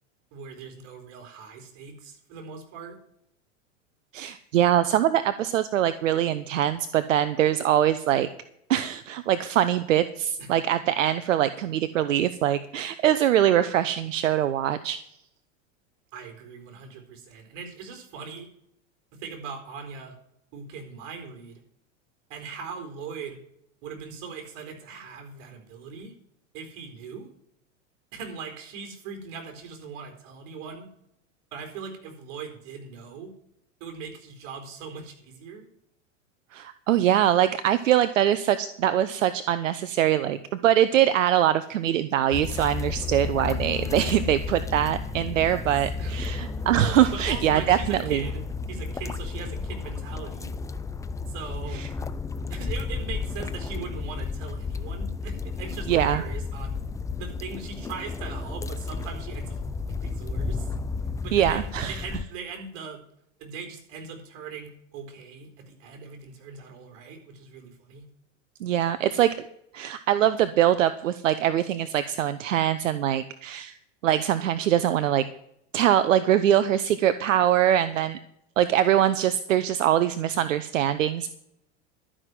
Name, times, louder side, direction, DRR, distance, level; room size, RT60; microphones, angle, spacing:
voice 1, 0.3-3.0 10.4-10.5 16.1-18.5 19.1-20.1 20.5-21.6 22.3-23.4 23.8-26.1 26.5-27.3 28.1-30.9 31.5-33.3 33.8-35.7 45.5-45.7 46.0-46.2 47.1-48.4 48.7-50.6 51.3-51.9 52.5-56.8 57.2-59.6 59.9-60.7 61.2-61.6 61.9-63.0 63.4-68.1, right 5 dB, 55° right, 5 dB, 4.2 m, -40 dB
voice 2, 4.1-8.3 8.7-15.0 36.5-48.2 51.7-51.9 55.9-56.2 61.3-62.0 68.6-69.3 69.7-73.8 74.0-75.3 75.7-78.2 78.6-81.3, right 11 dB, 85° right, 12 dB, 0.8 m, -23 dB
sound 1, 42.3-62.2, left 4 dB, 10° left, 0.5 m, -32 dB
12.0 x 6.2 x 9.5 m, 0.74 s
hypercardioid pair, 105°, 37 cm